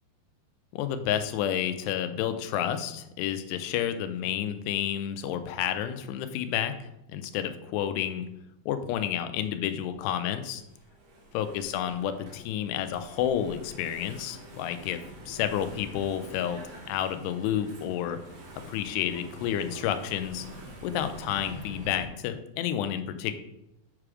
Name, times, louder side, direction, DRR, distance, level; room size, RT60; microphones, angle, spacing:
voice 1, 0.7-6.7 7.1-8.3 8.7-10.6 11.3-15.0 15.3-16.6 16.9-18.2 18.7-20.5 20.8-23.3, left 10 dB, 90° left, 9 dB, 2.8 m, -30 dB
Engine / Mechanisms, 9.9-22.0, right 1 dB, 65° right, 3.6 m, -46 dB
8.4 x 4.9 x 4.8 m, 0.85 s
omnidirectional pair, 4.8 m